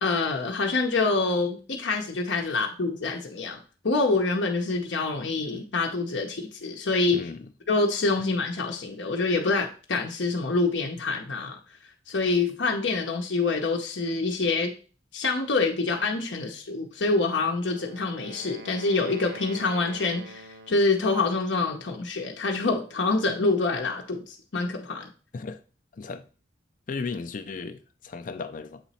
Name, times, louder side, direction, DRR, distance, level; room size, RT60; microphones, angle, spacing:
voice 1, 0.0-3.6 3.8-7.2 7.7-11.6 12.1-14.7 15.1-25.1, left 3 dB, 75° left, 0.8 m, -26 dB
voice 2, 7.1-7.5 25.3-25.6 25.9-26.3 26.9-28.8, left 4 dB, 45° left, 0.4 m, -35 dB
Wind instrument woodwind instrument, 17.2-21.0, right 2 dB, 60° right, 0.6 m, -45 dB
7.4 x 3.0 x 4.2 m
head